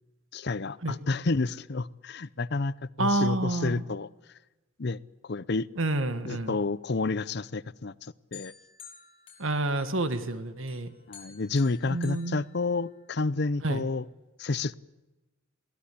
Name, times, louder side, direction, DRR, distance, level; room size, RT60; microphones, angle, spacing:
voice 1, 0.3-4.1 4.8-5.0 5.2-5.7 6.3-8.5 11.1-14.1 14.4-14.7, left 3 dB, 55° left, 0.7 m, -30 dB
voice 2, 3.0-3.8 5.8-6.6 9.4-10.9 11.9-12.4 13.6-13.8, right 2 dB, 80° right, 1.8 m, -28 dB
sound 1, 8.3-10.3 10.7-13.2, left 7 dB, 30° left, 6.2 m, -52 dB
23.0 x 17.0 x 8.5 m
head